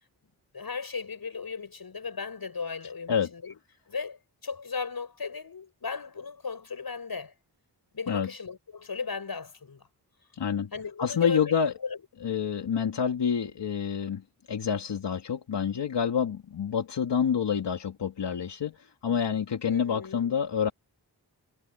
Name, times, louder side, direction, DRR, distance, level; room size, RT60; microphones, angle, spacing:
voice 1, 0.5-3.6 3.9-7.3 7.9-9.9 10.7-11.4 11.8-12.0 19.7-20.3, left 5 dB, 60° left, 6.7 m, -36 dB
voice 2, 10.3-10.7 11.0-11.7 12.2-20.7, left 7 dB, 85° left, 2.4 m, -28 dB
cardioid pair, 60°, 41 cm